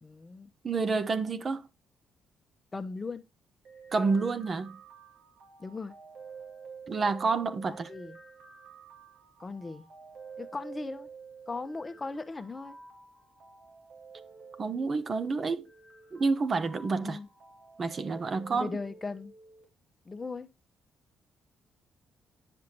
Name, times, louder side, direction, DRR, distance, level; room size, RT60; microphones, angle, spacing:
voice 1, 0.0-0.5 2.7-3.2 5.6-5.9 7.7-8.2 9.4-9.9 10.4-11.1 11.5-12.8 17.0-17.3 18.5-19.3 20.1-20.5, left 3 dB, 25° left, 0.9 m, -38 dB
voice 2, 0.6-1.7 3.9-4.8 6.9-7.9 14.6-15.7 16.1-17.2 17.8-18.7, right 4 dB, 40° right, 0.9 m, -29 dB
sound 1, 3.6-19.6, right 5 dB, 75° right, 2.9 m, -50 dB
9.9 x 5.7 x 3.0 m
cardioid pair, 90°, 0 cm